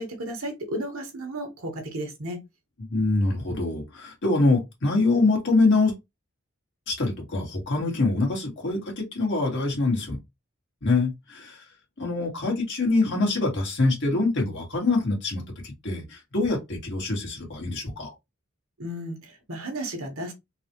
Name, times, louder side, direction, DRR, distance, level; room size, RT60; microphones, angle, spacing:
voice 1, 0.0-2.4 18.8-20.3, right 1 dB, 85° right, 1.3 m, -33 dB
voice 2, 2.9-5.9 6.9-10.2 10.8-11.6 12.0-18.1, left 3 dB, 60° left, 1.7 m, -24 dB
4.0 x 2.4 x 3.0 m
head